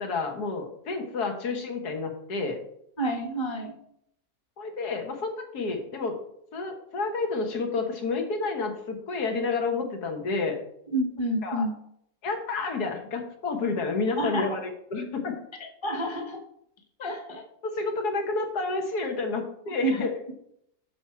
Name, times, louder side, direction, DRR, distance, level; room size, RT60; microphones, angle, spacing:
voice 1, 0.0-2.6 4.6-6.2 6.5-10.6 11.4-11.7 12.2-15.3 17.6-20.1, left 3 dB, 80° left, 4 dB, 1.8 m, -30 dB
voice 2, 3.0-3.7 10.9-11.7 14.2-14.5 15.8-16.4 17.0-17.4 19.8-20.1, right 1 dB, 20° left, 4 dB, 1.0 m, -28 dB
8.0 x 6.1 x 4.4 m, 0.72 s
omnidirectional pair, 1.7 m